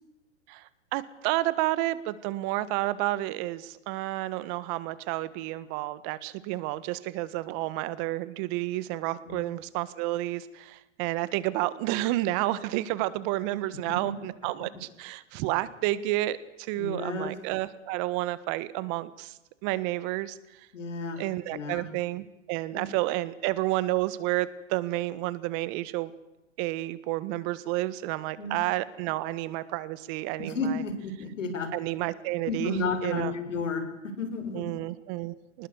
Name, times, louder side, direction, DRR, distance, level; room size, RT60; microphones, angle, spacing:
voice 1, 0.5-20.7 21.2-26.1 26.6-30.8 31.7-32.8 33.0-33.3 34.5-35.7, right 17 dB, 45° right, 16 dB, 1.7 m, -30 dB
voice 2, 16.8-17.3 20.7-21.2 21.5-21.9 22.7-22.9 28.4-28.6 30.4-31.7 32.5-34.7, left 3 dB, 90° left, 9 dB, 5.7 m, -32 dB
26.0 x 20.0 x 8.2 m, 0.90 s
hypercardioid pair, 125°, 36 cm